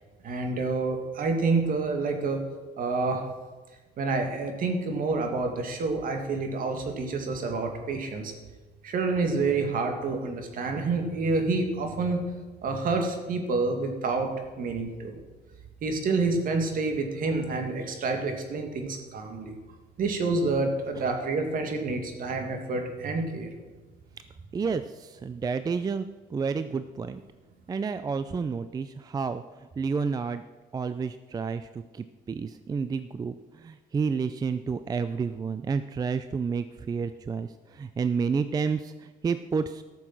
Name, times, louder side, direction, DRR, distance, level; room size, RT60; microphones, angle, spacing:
voice 1, 0.2-2.4 2.8-3.2 4.0-8.3 8.8-12.2 12.6-14.3 14.6-15.2 15.8-19.5 20.0-23.5, right 3 dB, 55° right, 4 dB, 2.1 m, -28 dB
voice 2, 24.5-26.1 26.3-27.2 27.7-29.4 29.8-30.4 30.7-31.6 32.3-33.3 33.6-37.5 37.8-38.9 39.2-39.8, right 5 dB, 25° right, 11 dB, 0.4 m, -29 dB
13.5 x 6.9 x 6.1 m, 1.3 s
cardioid pair, 110°, 17 cm